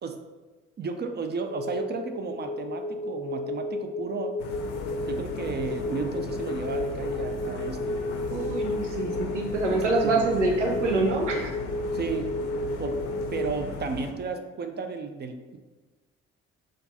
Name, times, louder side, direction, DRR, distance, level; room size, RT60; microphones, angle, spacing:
voice 1, 0.8-4.4 5.1-8.0 9.7-10.3 11.9-12.4 12.8-13.0 13.3-15.6, right 4 dB, 30° right, 6 dB, 0.5 m, -33 dB
sound 1, 1.5-13.5, left 1 dB, 20° left, 0.6 m, -32 dB
sound 2, 4.4-14.1, left 5 dB, 80° left, 0.5 m, -37 dB
voice 2, 8.3-11.5, right 3 dB, 85° right, 1 dB, 0.6 m, -26 dB
4.5 x 2.4 x 3.9 m, 1.3 s
figure-of-eight pair, 45°, 35 cm